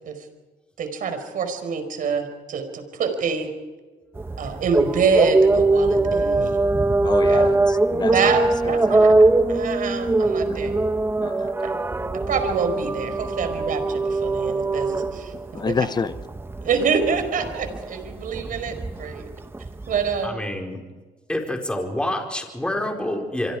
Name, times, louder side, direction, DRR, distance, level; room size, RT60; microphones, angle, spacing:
voice 1, 0.8-3.5 4.4-6.6 7.3-7.5 8.0-9.1 9.5-10.8 11.6-11.7 12.3-15.3 15.7-15.9 16.6-19.2 19.9-20.4, right 5 dB, 55° right, 8 dB, 5.1 m, -26 dB
sound 1, 4.1-20.3, right 2 dB, 15° right, 1.0 m, -22 dB
voice 2, 7.0-9.0 10.4-10.8 11.2-11.5 15.3-16.1, left 5 dB, 25° left, 14 dB, 0.9 m, -29 dB
voice 3, 20.2-20.8 21.3-23.6, left 1 dB, 5° left, 2 dB, 4.4 m, -27 dB
27.0 x 25.0 x 4.9 m, 1.3 s
cardioid pair, 110°, 17 cm